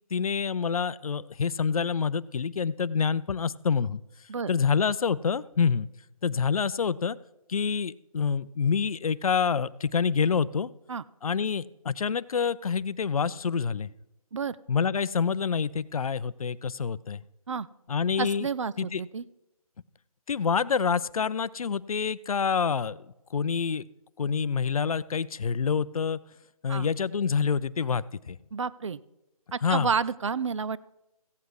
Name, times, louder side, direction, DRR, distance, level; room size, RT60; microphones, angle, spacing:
voice 1, 0.1-4.0 4.5-5.9 6.2-7.2 7.5-10.7 11.2-13.9 14.7-17.2 17.9-18.5 18.8-19.0 20.3-23.0 23.3-23.8 24.2-26.2 26.6-28.4 29.6-29.9, left 6 dB, 70° left, 19 dB, 0.5 m, -27 dB
voice 2, 18.2-19.2 26.7-26.9 28.5-29.0 29.5-30.8, right 6 dB, 55° right, 18 dB, 0.4 m, -30 dB
15.5 x 8.2 x 4.8 m, 0.92 s
figure-of-eight pair, 160°, 19 cm